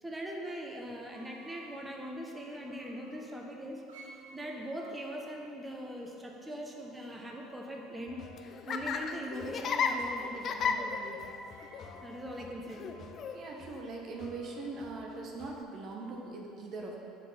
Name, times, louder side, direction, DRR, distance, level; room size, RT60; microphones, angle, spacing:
voice 1, 0.0-11.2 12.0-12.9, equal, 15° right, 0 dB, 1.1 m, -41 dB
sound 1, 1.1-3.2 3.9-5.0 6.6-8.8 9.1-9.9 11.4-14.8 15.9-16.2, right 3 dB, 80° right, 1.0 m, -58 dB
Laughter, 8.1-15.6, left 5 dB, 45° left, 0.5 m, -36 dB
voice 2, 13.3-17.0, right 3 dB, 50° right, 0 dB, 1.0 m, -41 dB
7.9 x 4.5 x 5.8 m, 2.7 s
hypercardioid pair, 70°, 0 cm